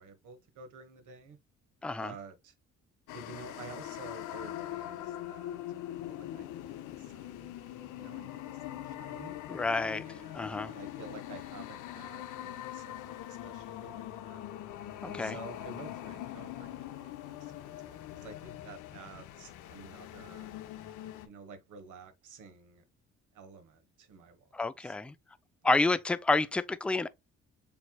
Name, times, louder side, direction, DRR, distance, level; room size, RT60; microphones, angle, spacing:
voice 1, 0.0-1.4 2.0-2.5 3.1-5.6 5.9-7.5 7.9-9.4 10.0-14.4 15.0-20.5 21.2-22.8 23.3-25.0 25.6-25.8, right 4 dB, 80° right, 1.3 m, -51 dB
sound 1, 3.1-21.3, left 13 dB, 85° left, 0.7 m, -42 dB
voice 2, 9.5-10.0 10.3-10.7 15.2-15.3 24.5-25.1 25.6-27.1, left 3 dB, 5° left, 0.3 m, -29 dB
6.9 x 3.1 x 2.2 m
cardioid pair, 90°, 30 cm